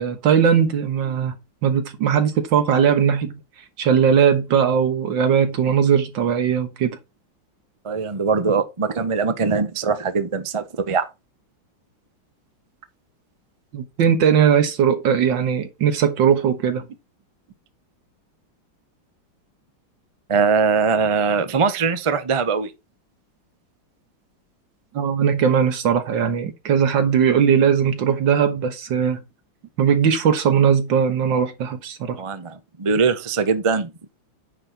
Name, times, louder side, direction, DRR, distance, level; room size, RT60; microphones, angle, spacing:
voice 1, 0.0-1.3 1.6-3.4 3.8-7.0 13.7-16.8 24.9-29.2 29.8-32.2, right 7 dB, 70° right, 1.9 m, -19 dB
voice 2, 7.8-11.1 20.3-22.7 32.2-33.9, right 5 dB, 40° right, 0.4 m, -21 dB
9.7 x 4.4 x 4.8 m
omnidirectional pair, 2.1 m